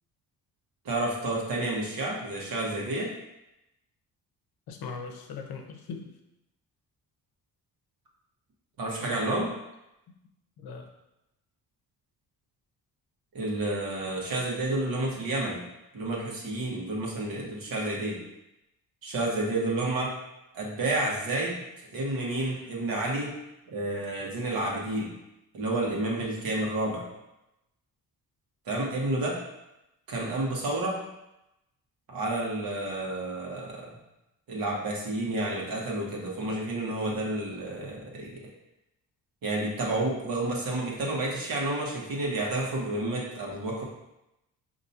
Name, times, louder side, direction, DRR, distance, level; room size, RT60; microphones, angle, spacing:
voice 1, 0.8-3.1 8.8-9.5 13.3-15.6 15.9-18.2 19.0-20.2 20.5-23.4 23.7-25.1 25.5-27.1 28.6-29.4 30.1-31.0 32.1-34.0 34.5-38.4 39.4-43.8, right 2 dB, 65° right, -3 dB, 1.3 m, -30 dB
voice 2, 4.7-6.1 9.0-9.2 10.6-10.9, left 5 dB, 75° left, 4 dB, 0.7 m, -39 dB
5.3 x 2.9 x 2.8 m, 0.92 s
cardioid pair, 80°, 37 cm